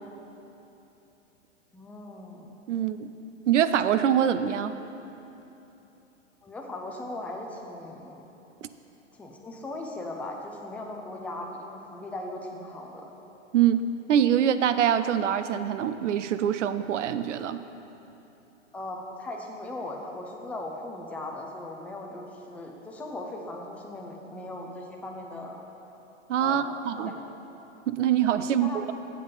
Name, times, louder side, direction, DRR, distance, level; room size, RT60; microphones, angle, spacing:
voice 1, 1.7-2.5 3.9-4.1 6.4-8.2 9.2-13.1 18.7-25.6 26.4-27.2 28.3-28.9, left 2 dB, 5° left, 0 dB, 0.4 m, -38 dB
voice 2, 2.7-3.1 3.5-4.7 13.5-17.6 26.3-27.1 27.9-28.9, right 9 dB, 80° right, 12 dB, 0.5 m, -24 dB
8.6 x 7.6 x 3.9 m, 3.0 s
hypercardioid pair, 120°, 36 cm